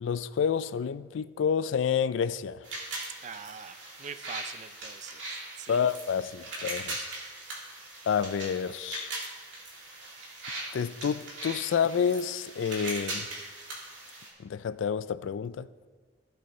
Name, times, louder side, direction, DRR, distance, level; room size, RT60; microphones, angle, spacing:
voice 1, 0.0-2.7 5.7-7.0 8.1-9.1 10.7-13.3 14.4-15.7, left 7 dB, 85° left, 0.3 m, -29 dB
sound 1, 2.6-14.3, right 2 dB, 75° right, 2.6 m, -40 dB
voice 2, 3.2-5.9, right 6 dB, 40° right, 0.5 m, -44 dB
14.5 x 7.8 x 3.1 m
head